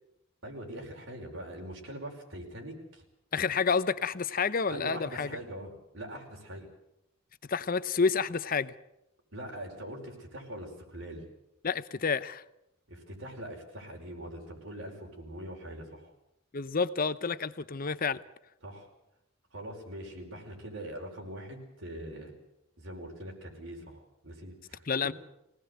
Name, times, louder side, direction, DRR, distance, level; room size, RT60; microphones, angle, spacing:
voice 1, 0.4-3.0 4.7-6.7 9.3-11.2 12.9-16.1 18.6-18.9 19.5-22.4 22.8-24.9, right 1 dB, 65° right, 1 dB, 5.3 m, -42 dB
voice 2, 3.3-5.4 7.5-8.7 11.6-12.4 16.5-18.2 24.9-25.1, left 5 dB, 45° left, 15 dB, 0.7 m, -29 dB
24.0 x 18.0 x 8.1 m, 0.85 s
head